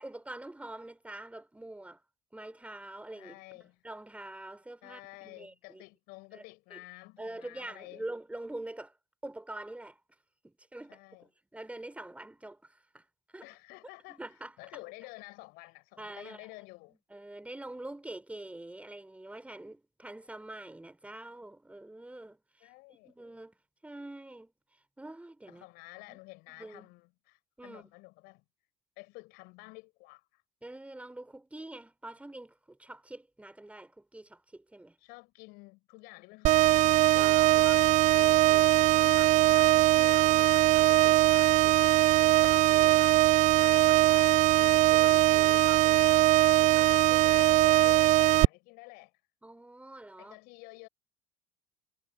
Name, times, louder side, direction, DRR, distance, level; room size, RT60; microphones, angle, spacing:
voice 1, 0.0-2.0 2.3-5.8 6.3-6.4 6.7-6.8 7.2-9.0 9.2-10.0 10.4-13.0 13.3-13.5 14.1-14.8 16.0-16.5 16.9-22.7 23.0-23.5 23.8-25.7 26.1-26.2 26.5-26.9 27.6-27.9 30.6-35.0 37.2-37.9 38.1-43.2 43.6-46.3 46.6-47.4 49.4-50.4, right 1 dB, 5° right, 4.8 m, -46 dB
voice 2, 3.1-3.8 4.8-8.0 10.9-11.3 13.4-14.2 14.6-17.0 22.6-23.1 25.5-28.4 29.0-30.4 35.0-37.3 37.5-38.0 44.1-44.3 47.3-49.1 50.2-50.9, left 25 dB, 55° left, 5.7 m, -50 dB
sound 1, 36.4-48.4, right 16 dB, 40° right, 0.4 m, -21 dB
figure-of-eight pair, 65°, 19 cm